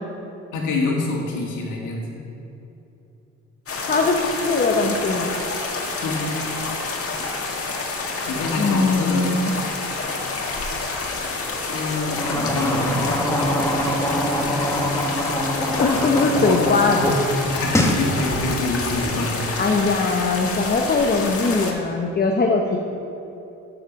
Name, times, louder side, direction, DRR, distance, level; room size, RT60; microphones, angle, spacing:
voice 1, 0.5-2.2 6.0-6.3 8.2-9.3 11.5-13.1 17.5-19.4, left 3 dB, 85° left, -1 dB, 1.9 m, -26 dB
sound 1, 3.7-21.7, left 3 dB, 50° left, 1.7 m, -28 dB
voice 2, 3.9-5.3 8.6-9.5 15.8-17.1 19.6-22.8, left 3 dB, 30° left, 2 dB, 0.9 m, -21 dB
sound 2, 12.1-17.2 17.5-18.0, left 1 dB, 10° left, 1.4 m, -23 dB
8.2 x 7.2 x 7.1 m, 2.9 s
cardioid pair, 90°, 30 cm